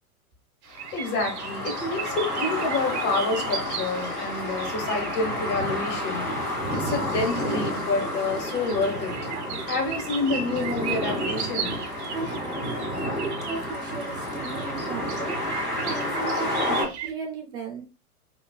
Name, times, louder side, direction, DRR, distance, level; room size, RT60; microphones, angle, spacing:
sound 1, 0.6-17.1, right 7 dB, 50° right, 0.8 m, -38 dB
sound 2, 0.7-16.9, left 1 dB, 85° left, 1.8 m, -30 dB
voice 1, 0.9-6.2 6.7-9.2 9.7-11.7, left 3 dB, 25° left, 3 dB, 1.0 m, -28 dB
voice 2, 12.1-15.4 15.8-17.8, right 4 dB, 10° right, -1 dB, 0.4 m, -36 dB
5.4 x 2.3 x 2.2 m, 0.31 s
figure-of-eight pair, 100°, 44 cm